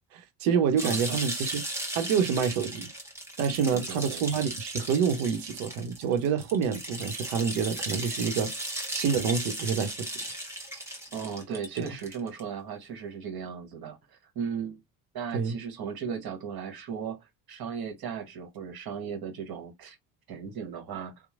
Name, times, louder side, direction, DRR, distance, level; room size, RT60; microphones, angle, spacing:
voice 1, 0.1-1.6 1.9-2.9 3.4-8.5 8.9-10.1 15.3-15.6, right 6 dB, 70° right, 0.7 m, -27 dB
sound 1, 0.8-12.4, right 1 dB, 5° right, 1.0 m, -36 dB
voice 2, 0.8-1.2 3.7-4.2 11.1-14.8 15.1-20.0 20.3-21.1, right 7 dB, 50° right, 1.2 m, -36 dB
2.9 x 2.0 x 2.4 m
hypercardioid pair, 60°, 48 cm